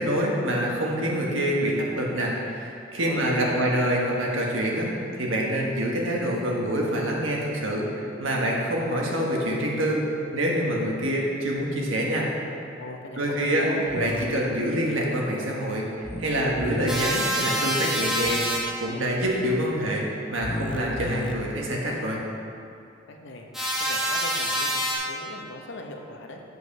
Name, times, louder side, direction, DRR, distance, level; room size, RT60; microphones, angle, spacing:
voice 1, 0.0-10.0 10.3-12.3 13.2-15.9 16.2-18.4 18.8-22.2, equal, 75° right, -2 dB, 1.5 m, -26 dB
voice 2, 3.0-3.7 12.8-14.2 23.1-23.5 23.8-26.5, left 2 dB, 65° left, 2 dB, 0.9 m, -40 dB
sound 1, 13.9-14.2 16.0-17.0 18.2-18.6 20.4-21.3, left 1 dB, 25° left, 0.5 m, -34 dB
sound 2, 16.9-18.6 23.5-24.9, equal, ahead, 1.2 m, -26 dB
8.0 x 5.0 x 6.0 m, 2.6 s
head